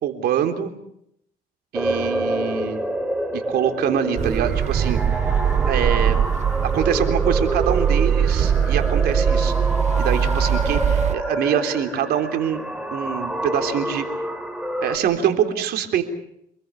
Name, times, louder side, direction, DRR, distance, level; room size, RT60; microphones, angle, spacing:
voice 1, 0.0-0.7 1.7-2.8 3.3-5.0 5.7-6.2 6.6-9.6 10.0-12.6 12.9-14.1 14.8-16.0, right 9 dB, 70° right, 6 dB, 3.7 m, -24 dB
sound 1, 1.7-15.0, right 1 dB, 5° right, 4.2 m, -27 dB
sound 2, 4.2-11.1, right 8 dB, 45° right, 1.0 m, -21 dB
28.0 x 21.5 x 7.1 m, 0.74 s
cardioid pair, 110°, 17 cm